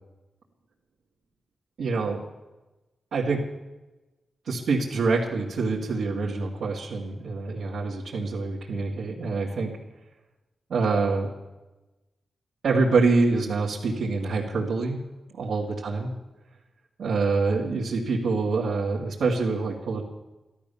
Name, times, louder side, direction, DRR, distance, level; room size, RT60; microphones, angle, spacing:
voice 1, 1.8-2.2 3.1-3.4 4.5-9.7 10.7-11.3 12.6-15.0 15.3-16.1 17.0-20.0, right 3 dB, 85° right, -6 dB, 2.4 m, -25 dB
14.0 x 12.5 x 7.0 m, 1.1 s
wide cardioid pair, 105°, 0 cm